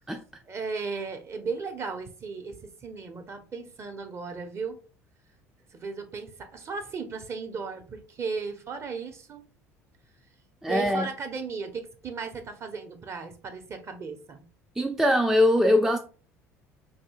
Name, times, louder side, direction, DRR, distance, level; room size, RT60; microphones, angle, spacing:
voice 1, 0.5-4.8 5.7-9.5 10.7-14.4, right 4 dB, 35° right, 0.7 m, -36 dB
voice 2, 10.6-11.1 14.8-16.0, left 1 dB, 5° right, 0.3 m, -22 dB
4.1 x 2.7 x 2.3 m
figure-of-eight pair, 65°, 8 cm